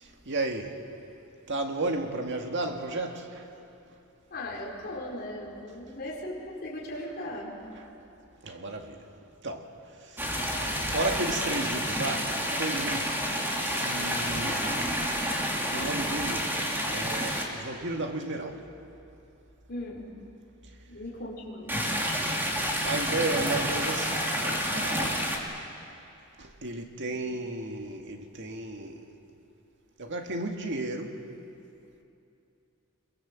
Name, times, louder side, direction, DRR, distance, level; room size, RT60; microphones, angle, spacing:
voice 1, 0.3-0.7 1.5-3.4 8.4-9.0 9.4-9.7 10.8-13.1 13.7-14.9 15.5-16.5 16.9-18.6 22.8-25.2 26.4-29.0 30.0-31.2, right 2 dB, 55° right, 3 dB, 2.1 m, -33 dB
voice 2, 4.3-6.4 6.6-7.6 19.7-20.1 20.9-22.0 27.0-27.2, left 1 dB, 45° left, -4 dB, 4.6 m, -38 dB
sound 1, 10.2-17.4 21.7-25.4, equal, 10° right, 2.8 m, -29 dB
26.0 x 23.0 x 7.6 m, 2.7 s
head